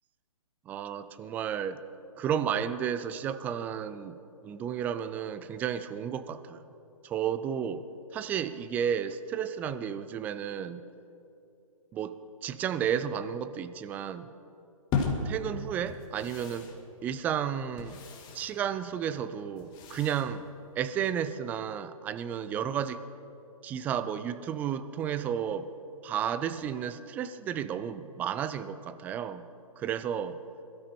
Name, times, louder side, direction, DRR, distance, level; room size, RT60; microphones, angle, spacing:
voice 1, 0.7-1.8 2.2-4.2 4.4-6.7 7.0-7.8 8.1-10.9 11.9-14.3 15.2-16.7 17.0-18.0 18.3-20.4 20.8-23.0 23.6-25.7 26.0-29.5 29.8-30.4, right 8 dB, 10° right, 13 dB, 0.3 m, -32 dB
sound 1, 14.9-21.1, left 4 dB, 25° left, 2.0 m, -37 dB
22.5 x 13.0 x 4.4 m, 2.7 s
hypercardioid pair, 135°, 18 cm